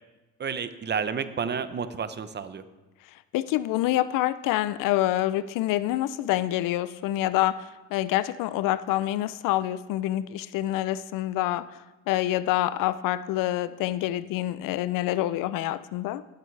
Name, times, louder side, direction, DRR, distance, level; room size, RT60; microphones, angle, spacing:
voice 1, 0.4-2.6, right 6 dB, 30° right, 11 dB, 0.8 m, -30 dB
voice 2, 3.3-11.8 12.1-16.2, left 14 dB, 70° left, 16 dB, 0.5 m, -27 dB
13.0 x 12.5 x 3.3 m, 1.1 s
cardioid pair, 100°, 34 cm